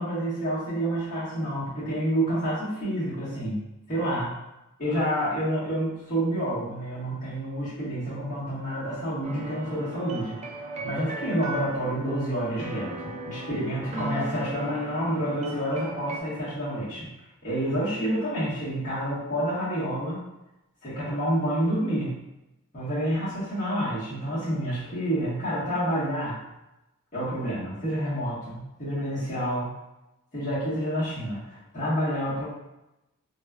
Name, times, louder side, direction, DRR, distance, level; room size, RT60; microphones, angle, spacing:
voice 1, 0.0-3.6 3.9-4.3 4.8-10.4 10.7-17.1 17.4-20.2 20.8-22.1 22.7-26.4 27.1-29.7 30.3-32.5, equal, 35° left, -12 dB, 1.2 m, -28 dB
sound 1, 9.2-16.2, right 2 dB, 30° right, 0.3 m, -37 dB
3.0 x 2.3 x 2.2 m, 0.94 s
head